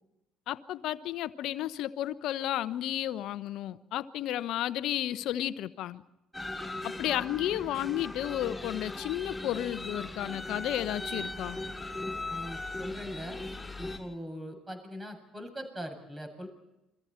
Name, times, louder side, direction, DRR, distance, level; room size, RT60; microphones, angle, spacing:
voice 1, 0.5-6.0 6.8-11.6, left 12 dB, 65° left, 0.9 m, -32 dB
sound 1, 6.3-14.0, left 2 dB, 10° left, 6.8 m, -38 dB
voice 2, 12.3-13.4 13.8-16.5, equal, 20° right, 7.4 m, -41 dB
29.0 x 22.5 x 4.4 m
hypercardioid pair, 55°, 0 cm